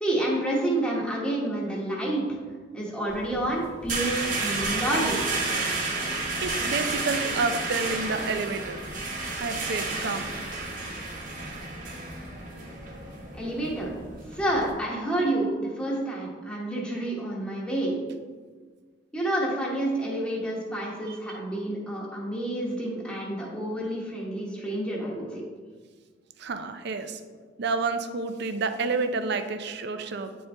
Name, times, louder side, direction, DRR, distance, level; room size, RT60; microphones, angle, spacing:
voice 1, 0.0-2.4 2.7-5.3 13.3-14.0 14.3-18.0 19.1-25.4, right 1 dB, 5° left, -5 dB, 1.1 m, -29 dB
sound 1, 3.1-14.7, right 3 dB, 45° right, 1.1 m, -31 dB
voice 2, 6.4-8.8 9.4-10.3 21.1-21.2 26.4-27.2 27.6-30.4, right 4 dB, 60° right, 9 dB, 0.5 m, -29 dB
8.9 x 4.2 x 3.4 m, 1.5 s
head